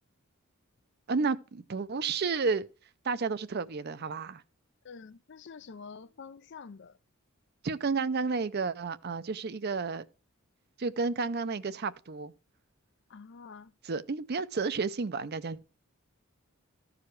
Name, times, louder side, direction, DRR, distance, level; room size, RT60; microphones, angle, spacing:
voice 1, 1.1-2.7 3.0-4.4 7.6-10.0 10.8-12.3 13.8-15.6, right 4 dB, 45° right, 0.5 m, -31 dB
voice 2, 4.8-7.0 9.9-10.0 13.1-13.7, left 5 dB, 55° left, 0.4 m, -47 dB
14.0 x 4.9 x 4.6 m
head